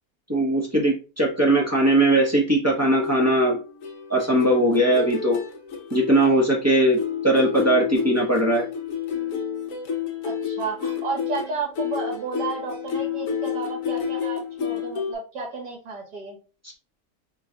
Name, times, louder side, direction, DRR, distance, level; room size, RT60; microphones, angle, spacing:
voice 1, 0.3-3.6 4.1-5.4 5.9-7.0 7.2-8.6, right 1 dB, 15° right, -2 dB, 0.6 m, -20 dB
sound 1, 3.0-6.7 7.0-15.1, left 7 dB, 60° left, 1.0 m, -30 dB
voice 2, 10.2-16.4, right 4 dB, 75° right, -2 dB, 2.0 m, -32 dB
3.8 x 2.4 x 3.8 m, 0.35 s
omnidirectional pair, 1.8 m